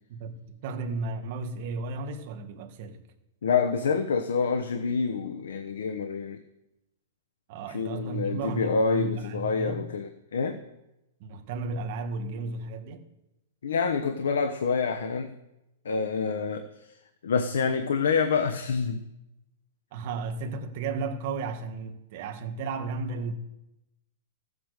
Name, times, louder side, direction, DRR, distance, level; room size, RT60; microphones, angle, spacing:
voice 1, 0.1-3.0 7.5-9.9 11.2-13.1 19.9-23.3, right 3 dB, 40° right, 1.7 m, -34 dB
voice 2, 3.4-6.4 7.7-10.6 13.6-15.3 15.8-17.0 17.2-19.0, left 5 dB, 90° left, 1.1 m, -27 dB
15.0 x 8.7 x 6.6 m
hypercardioid pair, 165°, 0 cm